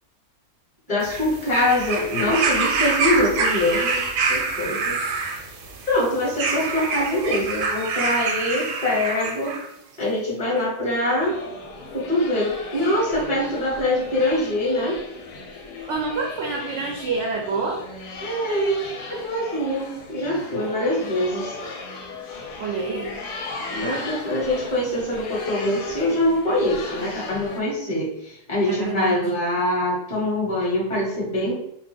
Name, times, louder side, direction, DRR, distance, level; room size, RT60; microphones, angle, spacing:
voice 1, 0.9-5.0 5.9-9.6 10.0-11.4 11.9-15.0 18.2-18.8 19.1-21.5 23.7-31.5, left 1 dB, 25° left, -5 dB, 1.0 m, -24 dB
sound 1, 1.0-9.7 10.6-10.7, right 4 dB, 85° right, 1.2 m, -26 dB
sound 2, 11.2-27.6, left 3 dB, 90° left, 1.2 m, -36 dB
voice 2, 15.8-17.8 22.6-23.1 28.7-29.2, right 4 dB, 70° right, -1 dB, 0.7 m, -27 dB
2.8 x 2.2 x 3.3 m, 0.75 s
omnidirectional pair, 1.7 m